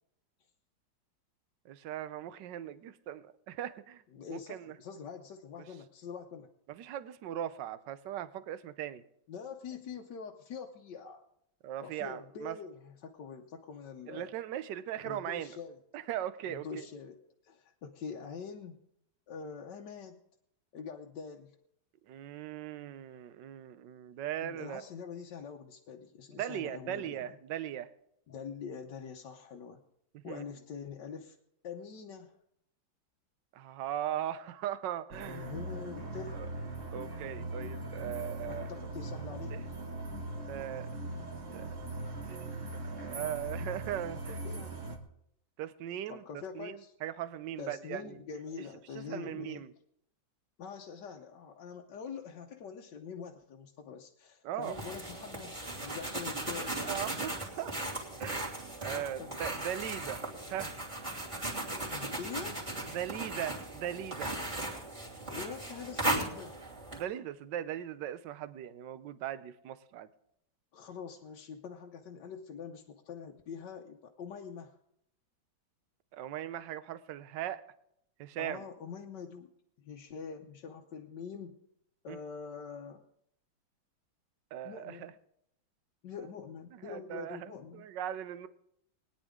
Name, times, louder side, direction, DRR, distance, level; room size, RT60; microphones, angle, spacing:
voice 1, 1.6-4.0 4.3-4.7 6.7-9.0 11.6-12.6 14.1-15.5 15.9-16.9 22.1-24.8 26.3-27.9 30.1-30.4 33.5-35.5 36.3-36.5 36.9-38.7 39.5-39.6 40.5-40.9 41.5-41.7 42.3-44.4 45.6-48.2 48.9-49.7 54.4-54.8 56.8-57.7 58.2-58.5 58.8-60.2 60.5-60.7 62.9-64.3 66.9-70.1 76.1-77.6 78.2-78.6 82.1-82.2 84.5-85.1 86.8-88.5, right 11 dB, 70° right, 13 dB, 1.3 m, -39 dB
voice 2, 4.1-6.5 9.3-11.2 11.8-14.3 15.0-15.8 16.5-18.8 19.3-20.2 20.7-21.6 24.4-27.3 28.3-29.8 30.2-31.4 31.6-32.3 35.2-36.4 38.4-39.6 44.3-44.8 46.1-46.9 47.6-49.6 50.6-56.8 58.8-59.3 61.9-62.7 65.3-66.6 70.7-74.7 78.4-79.5 79.8-81.6 82.0-83.0 84.6-85.1 86.0-87.9, left 6 dB, 65° left, 1 dB, 1.4 m, -44 dB
sound 1, 35.1-45.0, right 2 dB, 40° right, 1.8 m, -40 dB
sound 2, 54.6-67.0, right 1 dB, 15° right, 2.8 m, -37 dB
21.0 x 10.0 x 3.6 m, 0.75 s
omnidirectional pair, 2.2 m